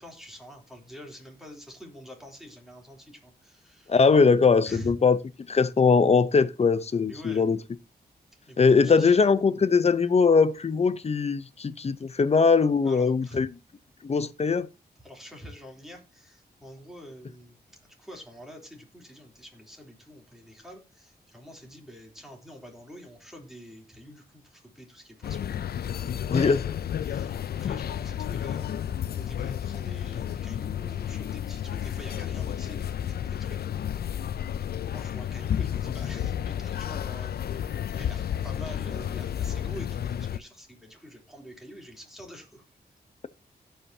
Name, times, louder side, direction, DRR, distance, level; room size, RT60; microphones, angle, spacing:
voice 1, 0.0-4.0 4.6-5.0 7.1-7.5 8.5-9.2 12.8-13.4 15.0-17.6 17.8-25.7 26.2-26.6 27.0-27.3 27.6-28.8 29.1-33.6 34.9-42.6, equal, ahead, 3.3 m, -46 dB
voice 2, 3.9-5.2 5.5-7.6 8.6-13.5 14.0-14.7 26.3-26.6, left 5 dB, 40° left, 0.8 m, -21 dB
sound 1, 25.2-40.4, left 9 dB, 70° left, 0.5 m, -31 dB
17.0 x 5.7 x 2.8 m
wide cardioid pair, 100°, 17 cm